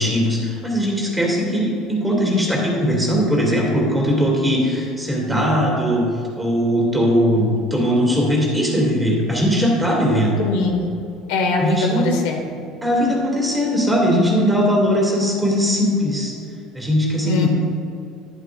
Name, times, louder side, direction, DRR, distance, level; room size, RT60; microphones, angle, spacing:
voice 1, 0.0-6.1 6.3-10.4 11.6-12.1 12.8-16.3 16.7-17.5, equal, 10° right, -2 dB, 2.4 m, -19 dB
voice 2, 10.4-10.9 11.3-12.4 17.2-17.5, left 3 dB, 90° left, 1 dB, 1.5 m, -21 dB
11.5 x 10.5 x 2.5 m, 2.5 s
cardioid pair, 130°, 0 cm